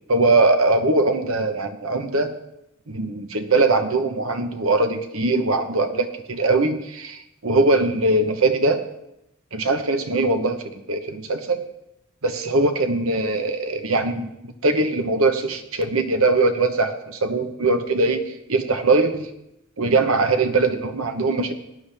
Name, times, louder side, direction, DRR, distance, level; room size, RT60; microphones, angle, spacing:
voice 1, 0.1-2.3 2.9-8.8 9.5-10.6 10.9-11.6 12.2-19.3 19.8-21.5, right 2 dB, 75° right, 7 dB, 1.1 m, -21 dB
18.5 x 10.0 x 3.5 m, 0.85 s
head